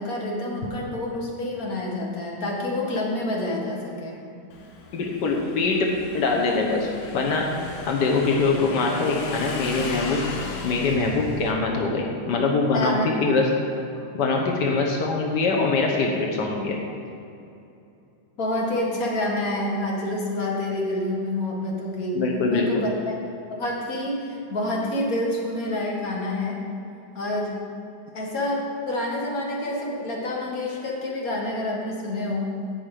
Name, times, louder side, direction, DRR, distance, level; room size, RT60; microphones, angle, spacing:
voice 1, 0.0-4.2 12.7-13.1 14.0-14.1 18.4-23.1 23.6-26.6 27.1-27.6 28.1-32.5, left 1 dB, 35° left, -2 dB, 1.8 m, -28 dB
Motorcycle / Engine, 4.5-11.5, left 3 dB, 70° left, 2.3 m, -35 dB
voice 2, 4.9-5.9 6.1-7.4 7.9-10.2 10.6-13.5 14.1-16.8 22.1-22.9, left 3 dB, 85° left, 0 dB, 0.9 m, -23 dB
17.5 x 5.8 x 5.0 m, 2.7 s
omnidirectional pair, 3.5 m